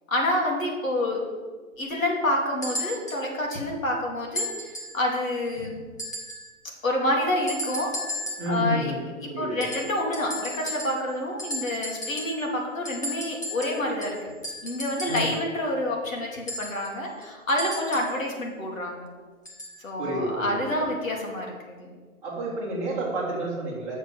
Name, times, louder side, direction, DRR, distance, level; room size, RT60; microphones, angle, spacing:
voice 1, 0.1-1.3 1.8-5.8 6.8-7.9 8.4-8.9 9.2-14.3 14.6-19.1 19.8-22.0, left 1 dB, 70° left, -1 dB, 2.9 m, -28 dB
sound 1, 2.6-3.3 4.4-5.0 6.0-6.5 7.5-8.6 9.6-11.1 11.4-12.5 12.9-15.4 16.5-18.2 19.5-19.8 20.7-20.8, equal, 15° left, 0.7 m, -35 dB
voice 2, 8.4-9.0 9.3-9.6 15.0-15.2 20.0-20.7 22.2-23.9, right 1 dB, 5° right, -8 dB, 1.6 m, -29 dB
7.6 x 6.6 x 6.4 m, 1.4 s
hypercardioid pair, 165°, 42 cm